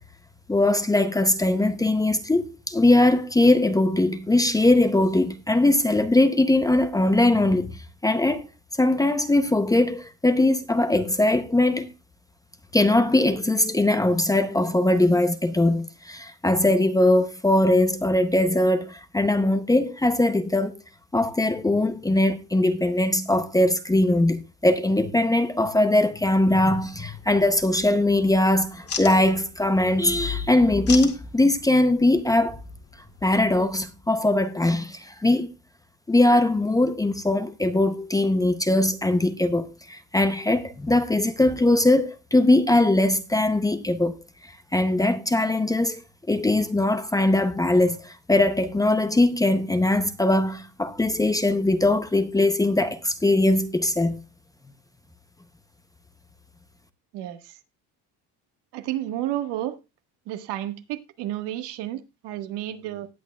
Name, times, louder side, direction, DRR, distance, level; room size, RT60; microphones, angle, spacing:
voice 1, 0.5-8.5 8.8-11.9 12.7-20.7 21.1-32.6 33.2-35.5 36.1-44.1 44.7-46.0 46.3-54.2, left 2 dB, 10° left, 0.6 m, -21 dB
sound 1, 26.6-33.9, left 6 dB, 35° left, 2.1 m, -40 dB
voice 2, 57.1-57.6 58.7-59.8 60.3-63.1, right 13 dB, 80° right, 1.6 m, -31 dB
18.0 x 8.7 x 2.3 m
cardioid pair, 155°, 41 cm